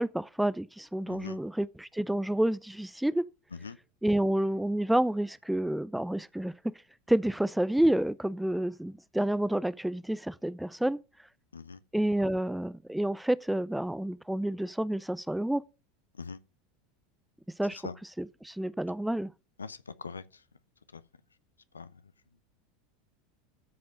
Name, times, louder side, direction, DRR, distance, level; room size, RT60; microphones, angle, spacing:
voice 1, 0.0-3.2 4.0-6.7 7.1-11.0 11.9-15.6 17.6-17.8 18.2-19.3, right 1 dB, 5° right, 0.6 m, -29 dB
voice 2, 1.1-1.4 3.5-3.8 11.5-11.8 16.1-16.4 17.7-18.0 19.6-20.4 20.9-21.0 21.7-21.9, left 5 dB, 85° left, 0.7 m, -42 dB
13.5 x 5.3 x 5.1 m
figure-of-eight pair, 80°, 0 cm